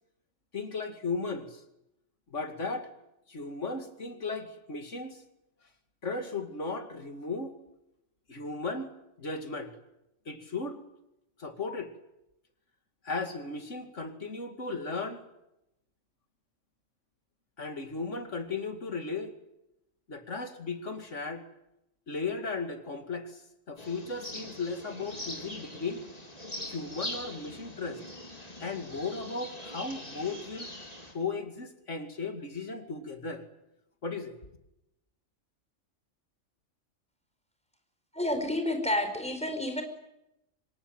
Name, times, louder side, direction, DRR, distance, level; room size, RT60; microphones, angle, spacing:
voice 1, 0.5-1.6 2.3-2.9 3.3-5.2 6.0-7.6 8.3-8.9 9.2-9.7 10.3-10.8 11.4-11.9 13.0-15.2 17.6-19.3 20.1-21.4 22.1-26.0 26.7-28.0 28.6-30.7 31.1-33.4 34.0-34.4, left 3 dB, 65° left, 7 dB, 2.8 m, -36 dB
sound 1, 23.8-31.1, left 1 dB, 30° left, 4.3 m, -42 dB
voice 2, 38.1-39.8, left 1 dB, 5° left, 6 dB, 4.6 m, -30 dB
25.5 x 23.0 x 9.0 m, 0.88 s
omnidirectional pair, 1.4 m